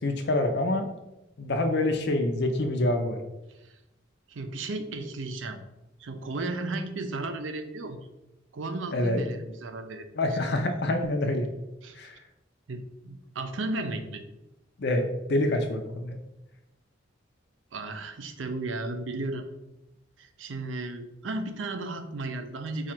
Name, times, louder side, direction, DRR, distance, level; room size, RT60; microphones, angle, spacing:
voice 1, 0.0-0.9 1.4-3.2 8.9-9.2 10.1-11.5 11.9-12.2 14.8-16.2, left 1 dB, 60° left, 5 dB, 0.5 m, -26 dB
voice 2, 4.3-5.6 6.0-8.0 8.5-10.1 11.8-12.0 12.7-14.2 17.7-19.5 20.2-22.9, right 2 dB, 90° right, 7 dB, 0.6 m, -34 dB
4.9 x 2.4 x 4.4 m, 0.97 s
head